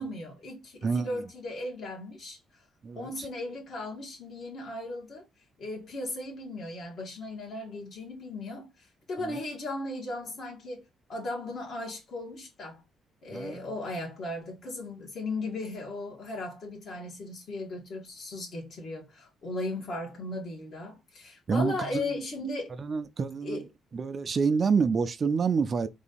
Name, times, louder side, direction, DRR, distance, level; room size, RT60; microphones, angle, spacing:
voice 1, 0.0-2.4 2.9-5.2 5.6-10.8 11.1-12.8 13.2-22.7 23.4-23.7, left 2 dB, 60° left, 2.1 m, -37 dB
voice 2, 0.8-1.2 2.8-3.1 9.2-9.4 13.3-13.6 21.5-22.2 22.8-23.6 23.9-25.9, right 5 dB, 45° right, 0.5 m, -28 dB
3.9 x 2.7 x 4.2 m
cardioid pair, 90°, 0 cm